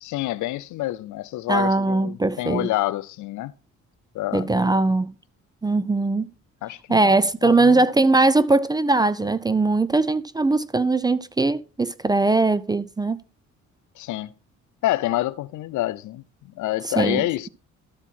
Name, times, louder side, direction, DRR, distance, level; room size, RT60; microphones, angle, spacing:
voice 1, 0.0-3.5 4.1-4.7 6.6-7.8 14.0-14.3 14.8-16.2 16.6-17.5, left 16 dB, 75° left, 0.5 m, -27 dB
voice 2, 1.5-2.7 4.3-5.1 5.6-6.3 6.9-13.2 16.8-17.2, right 3 dB, 15° right, 0.3 m, -20 dB
12.5 x 4.5 x 4.2 m
cardioid pair, 90°, 30 cm